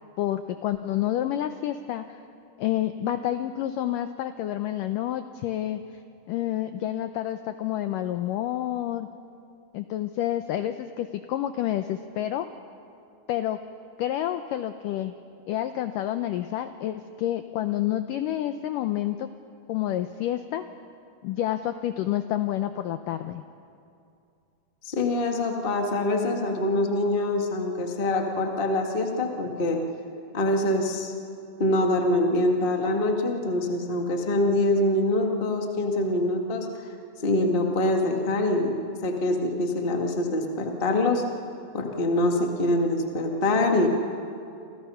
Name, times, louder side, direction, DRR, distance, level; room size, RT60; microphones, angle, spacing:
voice 1, 0.2-2.2 2.6-5.8 6.3-9.1 9.7-12.5 13.3-13.6 14.0-15.1 15.5-19.3 19.7-20.6 21.2-23.4, left 12 dB, 90° left, 9 dB, 1.9 m, -29 dB
voice 2, 24.8-29.8 30.3-31.1 31.6-36.7 37.2-41.2 41.7-43.9, left 1 dB, 40° left, 2 dB, 0.7 m, -24 dB
28.5 x 27.5 x 5.7 m, 2.5 s
omnidirectional pair, 4.7 m